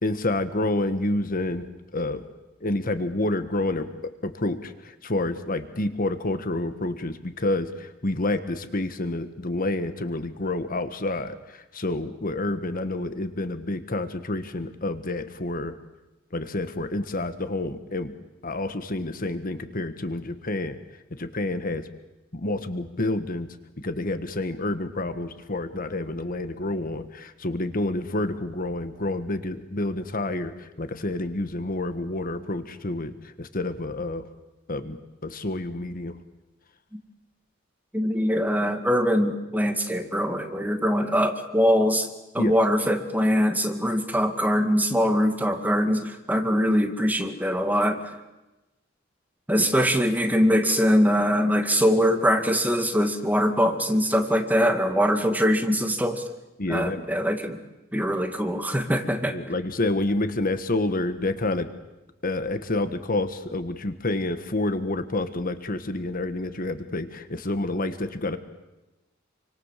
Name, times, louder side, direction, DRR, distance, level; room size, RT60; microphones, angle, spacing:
voice 1, 0.0-1.7 1.9-2.2 2.6-15.7 16.3-18.1 18.4-20.8 21.2-21.8 22.3-23.5 23.8-33.1 33.4-34.2 34.7-35.0 35.2-36.2 42.4-42.5 49.5-49.7 56.6-57.0 59.3-61.7 62.2-68.4, left 2 dB, 45° left, 10 dB, 1.4 m, -28 dB
voice 2, 37.9-42.1 42.3-48.2 49.5-56.2 56.7-57.6 57.9-59.4, equal, 10° right, 6 dB, 2.2 m, -22 dB
28.0 x 25.5 x 7.5 m, 1.0 s
head